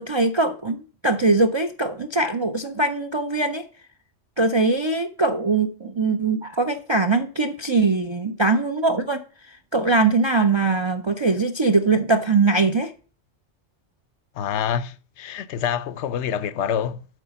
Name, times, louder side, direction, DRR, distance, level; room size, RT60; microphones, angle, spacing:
voice 1, 0.0-3.6 4.4-9.2 9.7-12.9, right 3 dB, 40° right, 0.4 m, -21 dB
voice 2, 14.3-17.1, left 8 dB, 75° left, 0.9 m, -26 dB
8.2 x 4.8 x 6.9 m
omnidirectional pair, 1.2 m